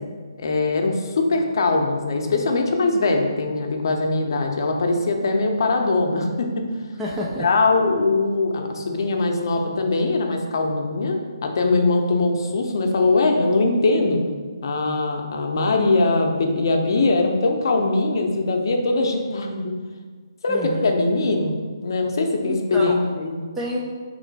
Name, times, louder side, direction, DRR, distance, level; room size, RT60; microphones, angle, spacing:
voice 1, 0.4-6.6 7.4-14.2 14.6-19.7 20.4-21.6 21.8-23.4, left 3 dB, 55° left, 3 dB, 0.6 m, -21 dB
voice 2, 7.0-7.5 20.5-20.9 22.4-22.9 23.6-23.8, equal, 10° right, -4 dB, 0.3 m, -28 dB
4.2 x 3.1 x 4.0 m, 1.5 s
hypercardioid pair, 160°, 3 cm